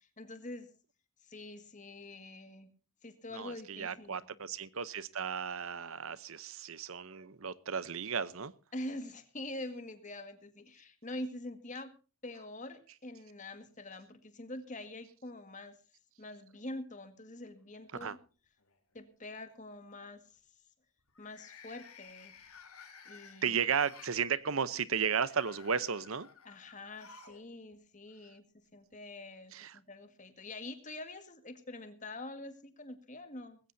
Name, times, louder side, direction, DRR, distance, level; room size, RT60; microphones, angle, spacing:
voice 1, 0.2-0.7 1.2-2.7 3.0-4.3 8.7-11.9 12.2-15.8 16.2-18.2 18.9-20.4 21.2-22.4 23.1-23.6 26.4-28.4 28.7-33.6, left 1 dB, 35° left, 9 dB, 1.9 m, -45 dB
voice 2, 3.3-8.5 18.0-18.2 23.4-26.3 29.5-29.8, right 6 dB, 70° right, 17 dB, 0.8 m, -34 dB
sound 1, 17.6-18.2 18.6-19.0 21.1-24.2 25.0-27.4 27.7-27.8 28.9-29.0, left 6 dB, 85° left, 3.5 m, -55 dB
20.0 x 16.5 x 2.7 m, 0.35 s
head